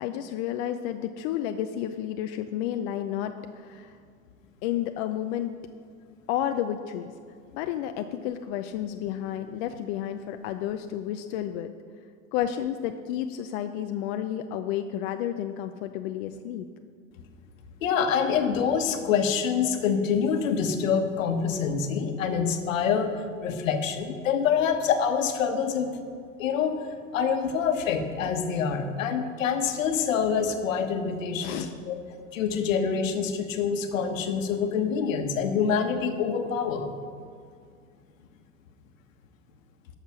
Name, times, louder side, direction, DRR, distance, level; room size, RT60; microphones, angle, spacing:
voice 1, 0.0-4.0 4.6-5.5 6.3-7.1 7.5-11.7 12.3-16.7 31.4-31.7, left 11 dB, 50° left, 7 dB, 0.7 m, -31 dB
voice 2, 17.8-23.1 23.4-26.0 26.4-26.8 27.1-32.0 32.3-36.9, left 6 dB, 70° left, 7 dB, 1.4 m, -26 dB
12.5 x 6.7 x 6.0 m, 2.2 s
hypercardioid pair, 100°, 40 cm